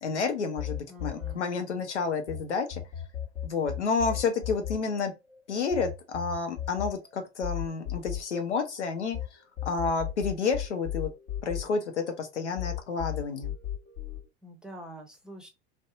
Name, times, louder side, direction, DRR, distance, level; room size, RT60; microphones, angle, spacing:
voice 1, 0.0-2.8 3.4-5.1 5.5-9.2 9.6-11.1 11.4-13.5, left 5 dB, 90° left, 0.7 m, -30 dB
sound 1, 0.6-2.4 2.7-9.3 9.6-12.2 12.6-14.2, left 11 dB, 55° left, 1.2 m, -35 dB
voice 2, 0.9-1.4 14.4-15.5, right 1 dB, ahead, 0.6 m, -46 dB
2.6 x 2.1 x 2.5 m
hypercardioid pair, 85°, 33 cm